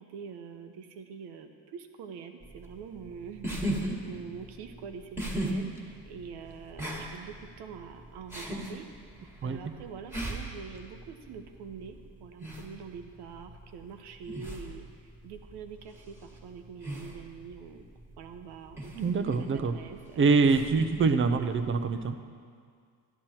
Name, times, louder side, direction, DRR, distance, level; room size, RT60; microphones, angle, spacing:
voice 1, 0.0-8.9 9.2-17.8 18.2-19.2 19.5-20.3, right 6 dB, 85° right, 6 dB, 1.1 m, -45 dB
sound 1, 2.4-22.1, right 1 dB, 5° right, 1.7 m, -39 dB
voice 2, 9.4-9.8 18.9-19.7 20.2-22.2, right 4 dB, 30° right, 9 dB, 0.7 m, -25 dB
12.5 x 11.5 x 4.4 m, 2.1 s
cardioid pair, 130°, 39 cm